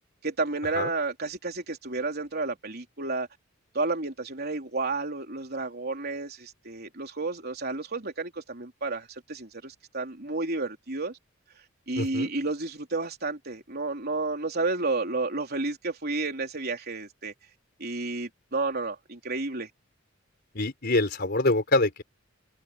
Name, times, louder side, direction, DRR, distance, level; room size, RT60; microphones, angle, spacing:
voice 1, 0.2-3.3 3.7-11.2 11.9-17.3 17.8-19.7, right 3 dB, 50° right, 3.6 m, -31 dB
voice 2, 12.0-12.3 20.5-22.0, left 2 dB, 55° left, 4.2 m, -25 dB
head